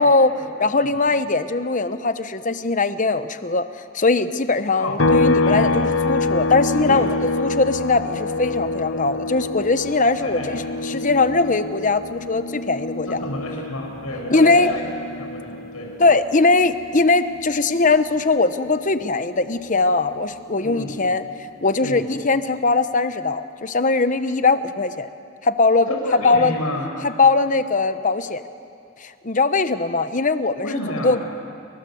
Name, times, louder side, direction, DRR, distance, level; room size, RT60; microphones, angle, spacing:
voice 1, 0.0-0.3 0.6-3.7 3.9-7.1 7.4-13.2 14.3-14.7 16.0-21.2 21.6-25.1 25.4-25.9 26.2-26.6 27.0-28.4 29.0-31.2, left 3 dB, 35° left, 11 dB, 1.0 m, -20 dB
sound 1, 5.0-18.5 18.9-21.1, left 2 dB, 60° left, 1.1 m, -26 dB
voice 2, 5.4-5.9 6.9-7.0 10.2-10.5 13.1-14.8 15.1-15.9 20.6-20.9 21.8-22.0 25.9-26.9 30.6-31.2, left 1 dB, 85° left, 0 dB, 7.2 m, -30 dB
29.0 x 24.5 x 7.9 m, 2.4 s
head